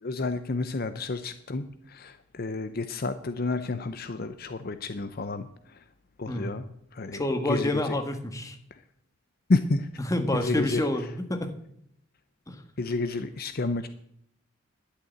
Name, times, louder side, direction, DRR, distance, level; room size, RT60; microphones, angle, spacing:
voice 1, 0.0-5.8 6.2-6.6 6.9-8.0 8.7-8.8 9.5-9.9 10.3-10.8 12.8-13.9, left 3 dB, 50° left, 11 dB, 0.6 m, -30 dB
voice 2, 7.1-8.6 10.0-11.5 12.5-12.6, left 1 dB, 15° left, 6 dB, 1.4 m, -28 dB
11.5 x 6.6 x 9.0 m, 0.70 s
head